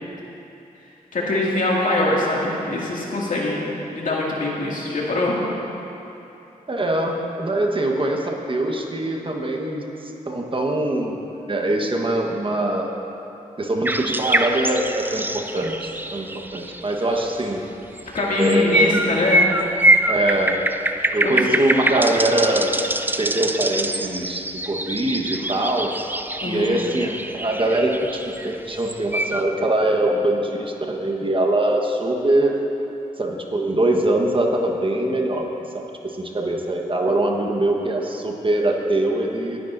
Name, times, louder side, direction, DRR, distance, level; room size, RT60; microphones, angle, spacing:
voice 1, 1.1-3.6 3.9-5.4 18.1-19.5 21.0-21.4 26.4-26.7, left 2 dB, 65° left, -4 dB, 2.3 m, -23 dB
voice 2, 6.7-9.9 10.3-11.2 11.5-12.9 13.6-17.6 18.2-19.0 20.1-20.6 21.1-22.8 23.2-25.9 26.4-32.6 33.2-35.5 35.7-39.6, right 1 dB, 35° right, 1 dB, 1.3 m, -23 dB
sound 1, 13.8-17.4 18.0-29.4, right 1 dB, 15° right, 0.5 m, -24 dB
19.5 x 10.0 x 2.6 m, 3.0 s
cardioid pair, 55°, 15 cm